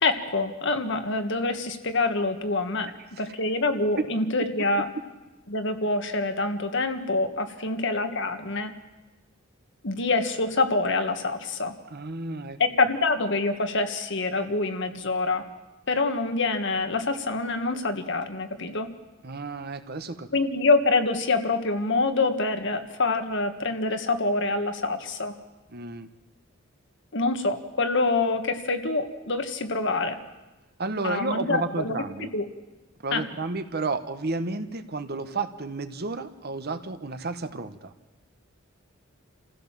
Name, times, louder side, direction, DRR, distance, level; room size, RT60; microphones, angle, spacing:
voice 1, 0.0-2.9 3.2-4.9 5.5-8.7 9.8-11.7 12.6-15.4 15.9-18.9 20.3-25.3 27.1-30.2 31.0-32.5 33.1-33.3, left 3 dB, 60° left, 7 dB, 1.6 m, -26 dB
voice 2, 11.9-12.6 19.2-20.3 25.7-26.1 30.8-32.3 33.0-37.9, right 3 dB, 50° right, 10 dB, 1.2 m, -32 dB
27.5 x 15.5 x 7.4 m, 1.1 s
head